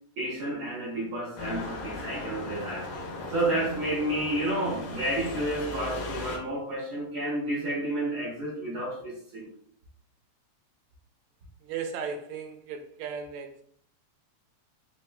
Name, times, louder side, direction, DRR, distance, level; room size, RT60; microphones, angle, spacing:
voice 1, 0.2-9.5, right 1 dB, 60° right, 1.6 m, -31 dB
sound 1, 1.4-6.4, left 2 dB, 85° left, 2.2 m, -37 dB
voice 2, 11.6-13.6, right 6 dB, 80° right, 1.8 m, -36 dB
5.0 x 2.9 x 2.2 m
omnidirectional pair, 3.3 m